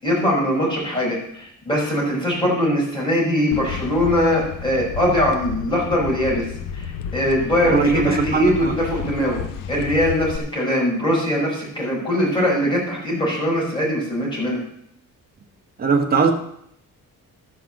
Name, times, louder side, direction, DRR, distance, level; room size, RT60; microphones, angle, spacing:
voice 1, 0.0-6.5 6.7-14.6, equal, 15° left, -5 dB, 5.5 m, -21 dB
sound 1, 3.5-10.4, left 7 dB, 75° left, 0.8 m, -31 dB
voice 2, 7.6-8.7 15.8-16.3, right 4 dB, 30° right, 2 dB, 1.6 m, -19 dB
13.0 x 5.8 x 7.4 m, 0.70 s
cardioid pair, 165°, 33 cm